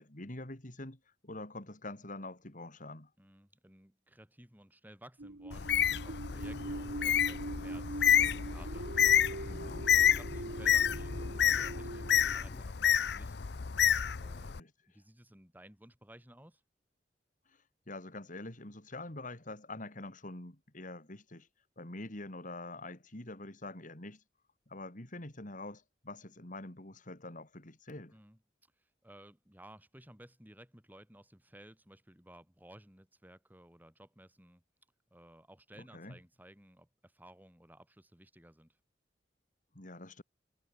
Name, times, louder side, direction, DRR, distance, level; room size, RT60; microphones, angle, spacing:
voice 1, 0.0-3.1 9.5-9.9 14.6-14.7 17.5-21.5 21.8-24.2 24.7-28.2 35.9-36.2 39.7-40.2, left 2 dB, 45° left, 3.3 m, -45 dB
voice 2, 3.2-9.7 10.1-13.4 14.2-14.6 14.9-16.6 28.1-28.4 28.8-34.6 35.1-38.8, right 1 dB, 10° right, 5.4 m, -57 dB
sound 1, 5.2-12.3, right 2 dB, 80° right, 1.6 m, -42 dB
Bird, 5.5-14.6, left 9 dB, 70° left, 0.7 m, -29 dB
sound 2, 6.2-12.6, equal, 15° left, 5.6 m, -52 dB
head